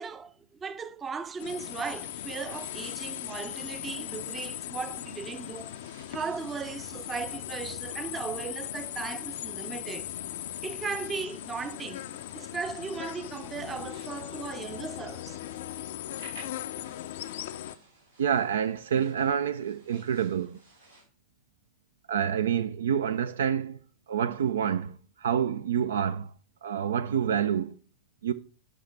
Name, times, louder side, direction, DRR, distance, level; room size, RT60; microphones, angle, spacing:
voice 1, 0.0-5.7 6.1-10.1 10.6-12.0 12.3-15.4, right 5 dB, 20° right, 0.6 m, -37 dB
sound 1, 1.4-17.8, left 12 dB, 55° left, 0.4 m, -38 dB
sound 2, 5.5-21.1, right 2 dB, 80° right, 3.8 m, -58 dB
voice 2, 18.2-20.6 22.1-23.8 24.1-26.3 26.6-27.8 28.2-28.3, right 8 dB, 65° right, 0.4 m, -27 dB
10.0 x 5.5 x 3.3 m
figure-of-eight pair, 90°, 0 cm